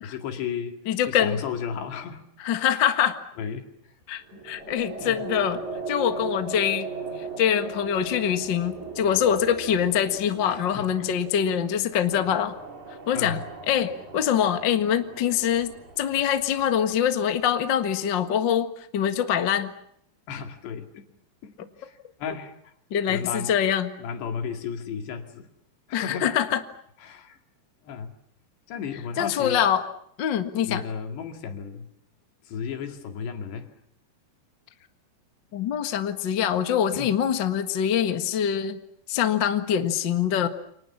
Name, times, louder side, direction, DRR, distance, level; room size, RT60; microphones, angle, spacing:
voice 1, 0.0-0.8 1.1-2.2 2.7-2.8 3.4-3.7 4.3-4.5 4.9-5.2 10.5-11.1 13.1-13.4 20.3-21.1 21.4-21.9 22.2-22.5 23.1-23.5 24.0-25.5 25.9-26.3 27.0-27.4 27.8-28.1 28.7-29.6 30.6-31.9 32.5-33.7 36.9-37.1, left 6 dB, 85° left, 5 dB, 4.6 m, -34 dB
voice 2, 0.9-1.4 2.4-3.2 4.1-6.9 7.4-12.5 13.1-19.7 22.9-23.9 25.9-26.6 29.2-29.9 30.2-30.8 35.5-38.8 39.1-40.5, left 9 dB, 55° left, 8 dB, 1.2 m, -24 dB
sound 1, 4.3-17.9, right 5 dB, 45° right, 5.2 m, -39 dB
29.5 x 26.0 x 7.3 m, 0.71 s
omnidirectional pair, 4.8 m